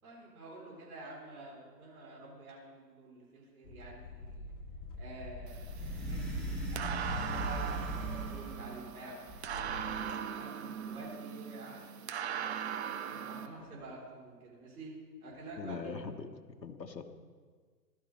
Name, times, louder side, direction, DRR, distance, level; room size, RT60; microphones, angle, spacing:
voice 1, 0.0-4.5 4.9-12.6 13.0-16.0, right 2 dB, 60° right, -3 dB, 3.9 m, -49 dB
sound 1, 3.6-8.6, left 3 dB, 35° left, 1.1 m, -46 dB
sound 2, 5.5-13.5, right 8 dB, 40° right, 0.8 m, -40 dB
sound 3, 5.7-8.7 9.3-10.2, right 1 dB, ahead, 1.0 m, -39 dB
voice 2, 15.6-17.1, left 5 dB, 90° left, 6 dB, 1.2 m, -42 dB
16.0 x 12.0 x 3.2 m, 1.5 s
figure-of-eight pair, 130°, 49 cm